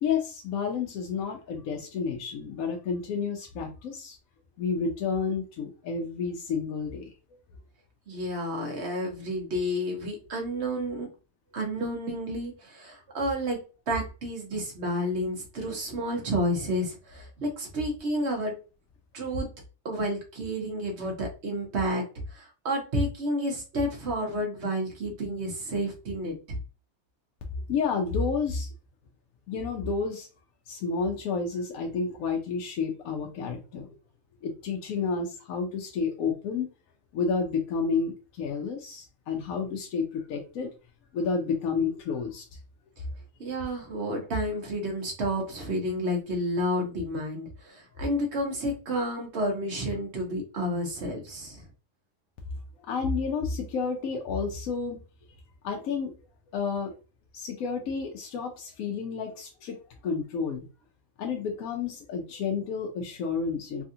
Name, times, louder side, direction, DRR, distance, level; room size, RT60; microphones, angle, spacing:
voice 1, 0.0-4.2 4.6-7.1 16.0-16.1 27.7-28.7 29.5-30.3 30.7-33.9 34.4-36.7 37.1-40.7 41.1-42.5 52.8-55.0 55.6-56.1 56.5-56.9 57.3-60.6 61.2-63.8, left 5 dB, 75° left, 2 dB, 1.0 m, -30 dB
voice 2, 8.1-11.1 11.5-18.6 19.1-19.5 19.8-22.0 22.3-26.6 43.4-51.6, equal, 50° right, 1 dB, 1.2 m, -30 dB
3.3 x 2.4 x 2.7 m, 0.32 s
omnidirectional pair, 1.5 m